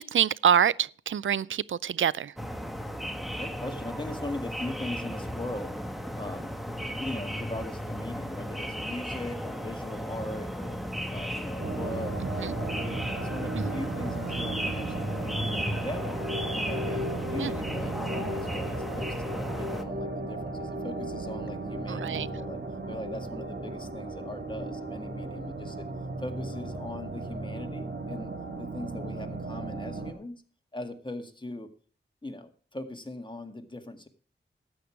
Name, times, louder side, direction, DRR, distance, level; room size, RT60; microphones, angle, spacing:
voice 1, 0.0-2.3 12.4-12.5 13.6-13.7 17.4-17.5 21.9-22.3, right 8 dB, 85° right, 0.4 m, -26 dB
sound 1, 2.4-19.8, equal, ahead, 1.5 m, -35 dB
voice 2, 3.4-5.8 6.1-6.5 6.9-10.8 11.1-16.2 16.5-22.6 22.9-25.9 26.2-28.3 28.6-30.4 30.7-31.7 32.2-34.1, left 1 dB, 25° left, 1.9 m, -40 dB
sound 2, 11.6-30.1, right 2 dB, 60° right, 2.2 m, -36 dB
12.5 x 8.8 x 4.6 m
cardioid pair, 45°, 20 cm